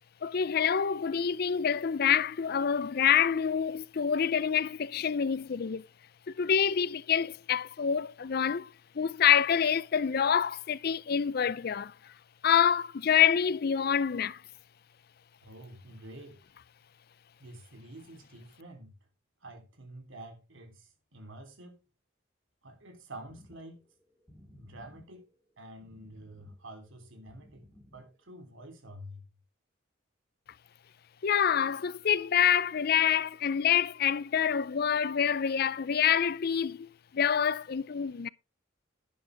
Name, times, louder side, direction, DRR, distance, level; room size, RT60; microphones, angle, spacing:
voice 1, 0.2-5.8 6.4-8.7 9.0-11.9 12.4-14.4 31.2-38.3, left 8 dB, 50° left, 0.5 m, -27 dB
voice 2, 15.4-16.4 17.4-18.9 19.4-21.8 22.6-23.8 24.5-25.3 25.6-27.6 27.9-29.2, right 1 dB, 80° right, 3.3 m, -48 dB
sound 1, 23.3-28.2, equal, 5° right, 4.2 m, -58 dB
11.5 x 11.0 x 3.4 m
head